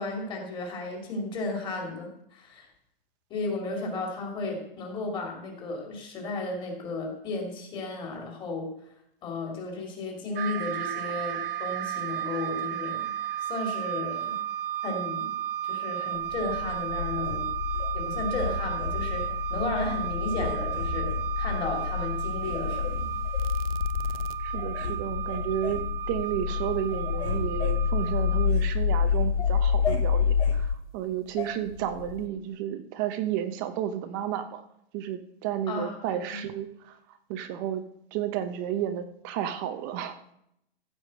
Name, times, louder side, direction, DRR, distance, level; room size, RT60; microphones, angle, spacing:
voice 1, 0.0-2.7 3.3-8.7 9.2-13.1 13.4-14.4 14.8-15.3 15.6-17.5 17.9-21.1 21.4-23.1 35.7-36.4, left 3 dB, 15° left, 0 dB, 2.5 m, -34 dB
sound 1, 10.4-28.5, right 11 dB, 60° right, 0.8 m, -34 dB
sound 2, 16.2-30.8 31.7-32.3, left 7 dB, 35° left, 0.6 m, -29 dB
sound 3, 17.2-17.9 18.4-19.3 19.7-20.0 20.3-21.2 21.8-21.9 22.4-23.5 24.1-24.2 24.5-25.0 25.3-25.9 26.3-26.6 26.9-28.7 29.1-30.6 31.4-31.5, left 4 dB, 90° left, 2.8 m, -37 dB
voice 2, 24.4-34.6 34.9-37.0 37.3-37.8 38.1-40.2, right 10 dB, 20° right, 10 dB, 0.6 m, -32 dB
15.0 x 5.0 x 7.4 m, 0.75 s
hypercardioid pair, 165°, 31 cm